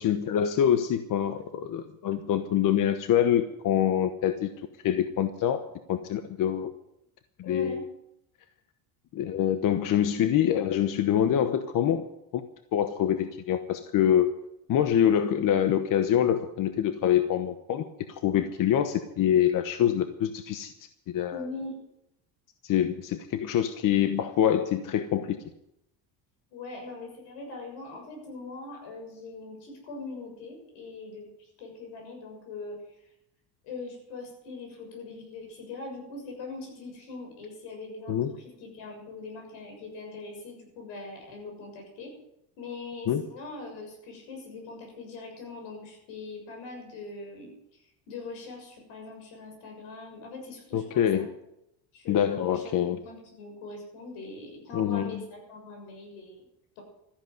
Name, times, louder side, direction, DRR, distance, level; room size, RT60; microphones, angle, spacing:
voice 1, 0.0-4.5 4.8-6.7 7.4-7.8 9.1-12.0 12.3-12.4 12.7-14.3 14.7-20.7 21.1-21.5 22.6-25.4 38.1-38.3 43.1-43.3 50.7-51.3 52.1-53.0 54.7-55.2, left 10 dB, 50° left, 9 dB, 1.0 m, -25 dB
voice 2, 7.4-7.9 21.3-21.8 26.5-31.3 31.6-32.8 33.6-42.1 42.6-51.3 51.9-56.4 56.8-56.9, left 3 dB, 80° left, 2 dB, 6.9 m, -42 dB
13.5 x 10.5 x 8.0 m, 0.82 s
cardioid pair, 130°, 43 cm